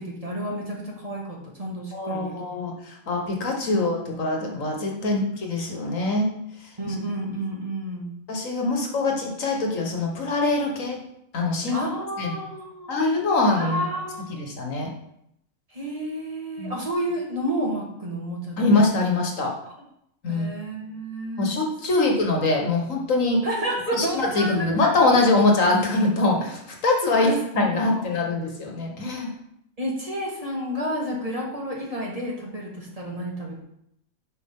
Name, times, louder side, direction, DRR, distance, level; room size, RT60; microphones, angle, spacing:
voice 1, 0.0-2.4 3.7-4.1 5.0-5.2 6.8-8.1 11.7-12.9 13.5-14.3 15.7-18.7 20.3-21.6 23.4-24.9 27.1-28.1 29.8-33.6, equal, 25° right, -3 dB, 1.8 m, -31 dB
voice 2, 1.9-6.3 8.3-11.0 11.3-11.8 12.2-12.4 12.9-13.9 14.3-14.9 16.6-16.8 18.6-19.5 20.2-20.5 21.4-23.4 23.9-29.3, left 2 dB, 75° left, 1 dB, 1.8 m, -23 dB
11.0 x 5.3 x 3.8 m, 0.77 s
omnidirectional pair, 1.4 m